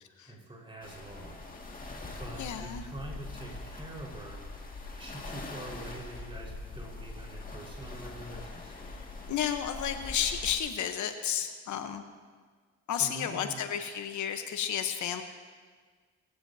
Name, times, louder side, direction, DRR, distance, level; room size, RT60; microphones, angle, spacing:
voice 1, 0.2-1.4 2.2-4.4 4.9-8.7 12.9-13.6, right 1 dB, 20° right, -2 dB, 4.6 m, -44 dB
sound 1, 0.8-10.6, left 2 dB, 30° left, 2.1 m, -43 dB
voice 2, 2.4-2.8 9.3-12.0 12.9-15.2, left 9 dB, 70° left, 7 dB, 1.0 m, -32 dB
20.0 x 15.0 x 2.8 m, 1.5 s
cardioid pair, 90°, 30 cm